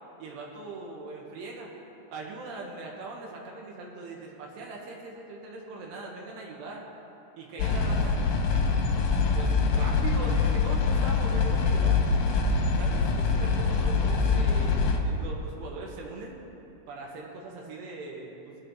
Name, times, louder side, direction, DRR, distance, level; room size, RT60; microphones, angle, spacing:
voice 1, 0.2-1.7 2.1-6.8 7.3-8.2 8.5-12.0 12.8-16.4 16.9-18.6, right 3 dB, 70° right, -2 dB, 3.4 m, -40 dB
sound 1, 7.6-15.0, left 4 dB, 80° left, 2.0 m, -24 dB
22.0 x 8.5 x 3.5 m, 2.8 s
omnidirectional pair, 5.3 m